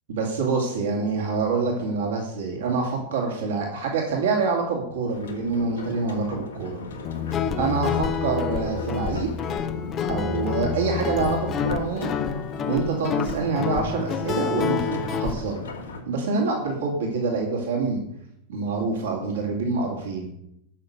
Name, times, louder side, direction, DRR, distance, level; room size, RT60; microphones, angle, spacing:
voice 1, 0.1-6.8 7.6-9.3 10.1-12.1 12.7-15.6 16.1-18.0 18.5-20.3, right 4 dB, 60° right, 0 dB, 2.6 m, -26 dB
sound 1, 5.1-16.0, left 3 dB, 70° left, 2.3 m, -37 dB
Guitar, 7.0-15.3, left 7 dB, 30° left, 0.9 m, -28 dB
12.0 x 6.7 x 6.7 m, 0.78 s
figure-of-eight pair, 90°, 0 cm